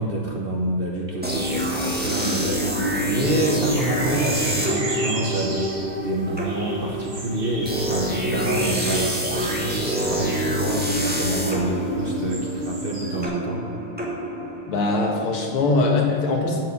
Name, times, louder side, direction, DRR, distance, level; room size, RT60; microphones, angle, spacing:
voice 1, 0.0-13.6, right 1 dB, 40° right, -1 dB, 0.8 m, -27 dB
sound 1, 1.2-14.9, equal, 5° right, 1.1 m, -26 dB
sound 2, 1.4-13.3, right 2 dB, 90° right, 3.7 m, -36 dB
voice 2, 14.7-16.7, left 3 dB, 75° left, 0 dB, 2.4 m, -21 dB
7.9 x 7.5 x 8.4 m, 2.1 s
omnidirectional pair, 2.4 m